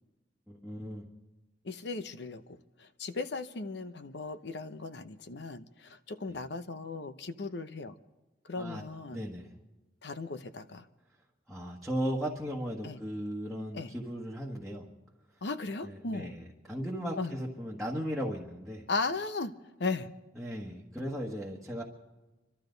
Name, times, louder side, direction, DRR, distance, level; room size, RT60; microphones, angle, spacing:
voice 1, 0.5-1.1 8.5-8.8 9.1-9.5 11.5-14.9 15.8-18.8 20.4-21.8, equal, ahead, -3 dB, 1.5 m, -36 dB
voice 2, 1.6-7.9 8.5-9.2 10.0-10.9 12.8-13.0 13.7-13.9 15.4-16.3 17.2-17.3 18.9-19.5 19.8-20.1, left 3 dB, 70° left, 11 dB, 0.8 m, -37 dB
26.5 x 12.5 x 3.9 m, 1.1 s
head